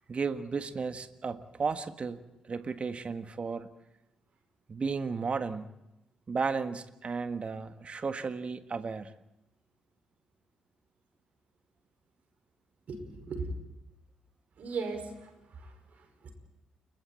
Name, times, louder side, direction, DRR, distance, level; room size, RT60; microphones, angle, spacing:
voice 1, 0.1-2.2 2.5-3.7 4.7-5.7 6.3-9.1, right 5 dB, 40° right, 10 dB, 1.6 m, -34 dB
voice 2, 12.9-13.5 14.6-16.3, right 4 dB, 55° right, 6 dB, 5.3 m, -39 dB
30.0 x 23.0 x 4.3 m, 0.95 s
hypercardioid pair, 40°, 3 cm